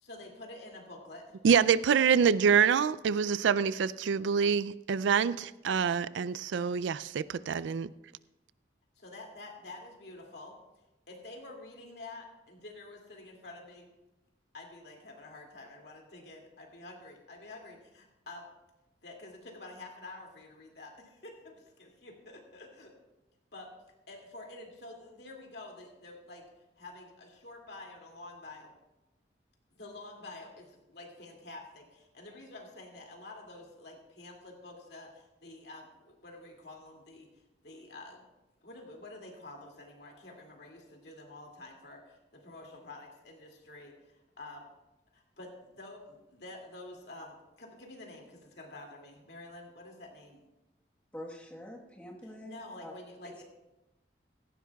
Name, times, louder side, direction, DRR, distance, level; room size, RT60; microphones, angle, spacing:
voice 1, 0.0-1.4 9.0-10.6 11.1-13.9 14.5-18.5 19.0-22.9 23.5-23.7 24.1-26.4 26.8-28.8 29.8-37.3 37.6-38.3 38.6-44.7 45.1-50.4 52.4-53.4, left 2 dB, 65° left, 2.4 m, -48 dB
voice 2, 1.4-7.9, right 7 dB, 85° right, 0.4 m, -26 dB
voice 3, 51.1-52.9 53.2-53.4, left 1 dB, 10° left, 1.3 m, -46 dB
17.0 x 15.0 x 2.3 m
head